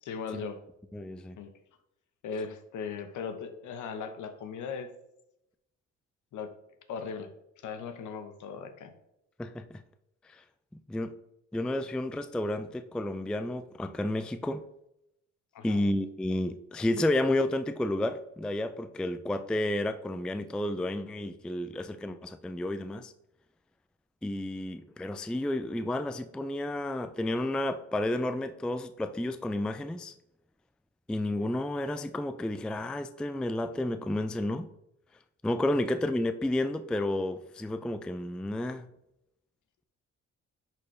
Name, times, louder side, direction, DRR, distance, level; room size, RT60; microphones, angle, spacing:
voice 1, 0.0-0.6 1.4-1.5 2.2-4.9 6.3-6.6 6.9-7.3 7.6-8.9 15.5-15.8, left 6 dB, 80° left, 8 dB, 1.0 m, -38 dB
voice 2, 0.9-1.4 9.4-9.8 10.9-11.1 11.5-14.6 15.6-23.1 24.2-30.1 31.1-34.7 35.4-38.9, left 1 dB, 5° left, 10 dB, 0.3 m, -31 dB
10.5 x 4.4 x 3.2 m, 0.83 s
cardioid pair, 90°, 30 cm